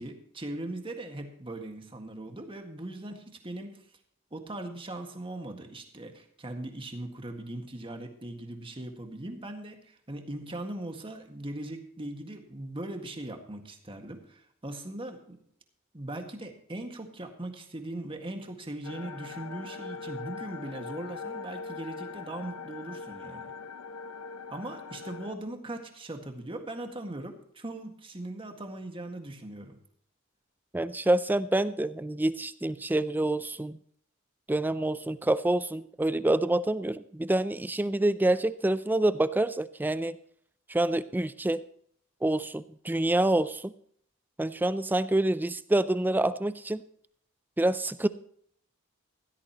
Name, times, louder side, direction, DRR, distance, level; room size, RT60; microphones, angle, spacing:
voice 1, 0.0-3.8 4.3-15.4 15.9-23.5 24.5-29.8, right 1 dB, 25° right, 5 dB, 1.8 m, -39 dB
sound 1, 18.8-25.3, left 5 dB, 80° left, 0.8 m, -41 dB
voice 2, 30.7-33.8 34.5-40.2 40.7-41.6 42.2-43.7 44.4-46.8 47.6-48.1, right 1 dB, 10° right, 15 dB, 0.4 m, -27 dB
16.0 x 12.5 x 3.0 m, 0.64 s
head